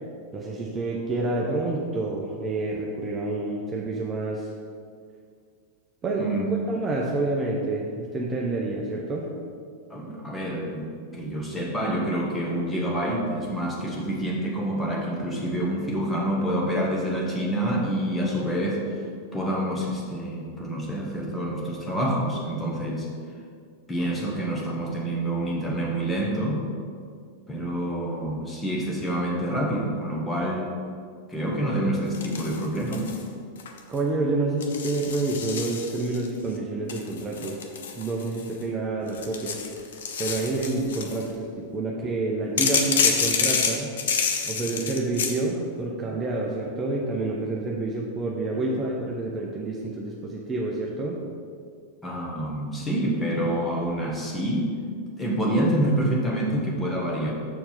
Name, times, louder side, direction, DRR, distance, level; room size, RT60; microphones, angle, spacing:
voice 1, 0.3-4.5 6.0-6.3 6.7-9.3 33.9-37.6 38.0-39.6 40.2-43.9 44.5-51.2, right 2 dB, 20° right, -2 dB, 0.8 m, -28 dB
voice 2, 9.9-19.0 19.3-23.1 23.9-26.6 27.5-30.7 31.3-33.2 46.1-46.2 52.0-54.8 55.2-57.3, right 1 dB, 10° left, -3 dB, 1.6 m, -27 dB
sound 1, 32.1-33.2 33.6-34.0 34.6-36.3 36.9-38.6 39.1-41.2 42.6-45.4, left 6 dB, 60° left, 0.7 m, -28 dB
6.7 x 4.4 x 5.7 m, 2.2 s
figure-of-eight pair, 90°, 0 cm